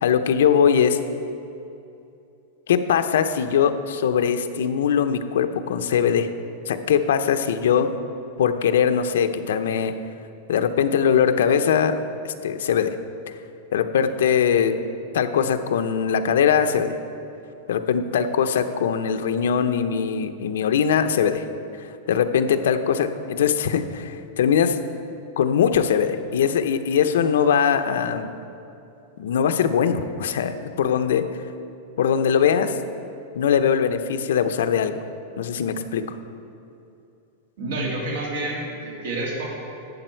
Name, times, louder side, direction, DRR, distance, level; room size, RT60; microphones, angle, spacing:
voice 1, 0.0-1.0 2.7-6.3 6.7-7.9 8.4-9.9 10.5-12.0 12.2-13.0 13.7-14.8 15.1-17.0 17.7-21.4 22.1-24.8 25.4-28.3 29.2-31.4 32.0-32.8 33.4-34.9 35.4-36.0, left 7 dB, 80° left, 8 dB, 0.6 m, -21 dB
voice 2, 37.6-39.5, right 2 dB, 65° right, -3 dB, 2.6 m, -28 dB
12.0 x 8.0 x 4.5 m, 2.7 s
supercardioid pair, 180°, 0 cm